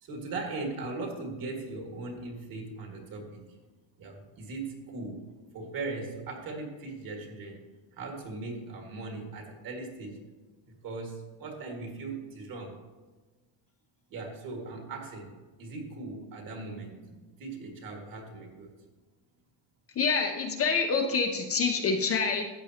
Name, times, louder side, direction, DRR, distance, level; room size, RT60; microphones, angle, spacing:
voice 1, 0.0-3.4 4.0-5.2 5.5-7.6 7.9-10.2 10.6-12.8 14.1-15.3 15.6-18.8, right 3 dB, 45° right, 2 dB, 2.1 m, -39 dB
voice 2, 20.0-22.5, left 5 dB, 30° left, 3 dB, 0.7 m, -27 dB
13.5 x 8.6 x 2.9 m, 1.3 s
cardioid pair, 160°, 47 cm